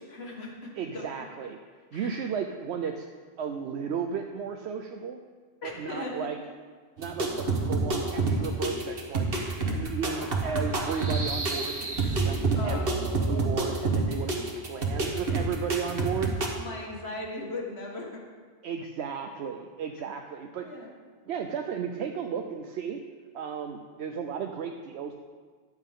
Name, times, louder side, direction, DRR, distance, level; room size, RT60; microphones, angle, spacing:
voice 1, 0.1-1.1 1.9-2.2 5.6-6.3 12.6-13.1 16.5-18.2 20.6-20.9, left 2 dB, 70° left, 0 dB, 2.0 m, -37 dB
voice 2, 0.7-1.6 1.9-3.1 3.4-5.2 5.6-6.4 7.0-9.3 9.7-12.8 13.3-16.3 18.6-20.7 21.3-23.0 23.3-25.1, right 7 dB, 80° right, 4 dB, 0.9 m, -34 dB
sound 1, 7.0-16.5, right 3 dB, 60° right, 1.4 m, -28 dB
sound 2, 10.7-13.6, right 3 dB, 25° right, 0.9 m, -33 dB
14.0 x 9.3 x 3.7 m, 1.6 s
omnidirectional pair, 1.1 m